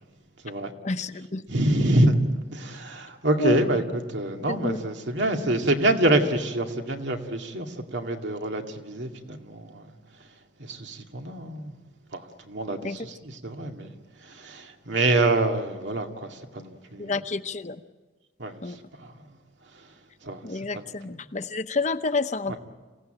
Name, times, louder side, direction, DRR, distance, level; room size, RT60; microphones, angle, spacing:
voice 1, 0.8-1.4 3.4-3.6 4.5-4.8 12.7-13.0 17.0-17.8 18.6-18.8 20.4-22.6, left 3 dB, 40° left, 0.8 m, -29 dB
voice 2, 1.5-2.2 2.5-3.8 4.1-9.9 10.6-11.7 12.1-13.9 14.2-17.1 18.4-19.2 19.7-19.8 20.2-20.8 22.5-22.6, right 1 dB, 85° right, 2.2 m, -26 dB
27.5 x 17.0 x 9.1 m
head